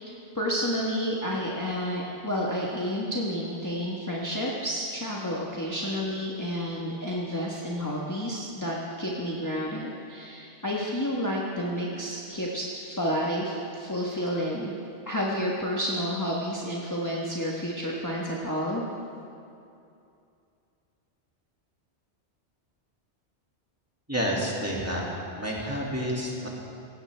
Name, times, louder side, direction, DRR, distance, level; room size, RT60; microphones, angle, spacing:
voice 1, 0.0-14.7 15.1-18.8, equal, 15° left, -4 dB, 1.3 m, -30 dB
voice 2, 24.1-25.1 25.4-26.5, equal, 15° right, -4 dB, 2.3 m, -29 dB
17.0 x 16.5 x 3.4 m, 2.6 s
omnidirectional pair, 1.2 m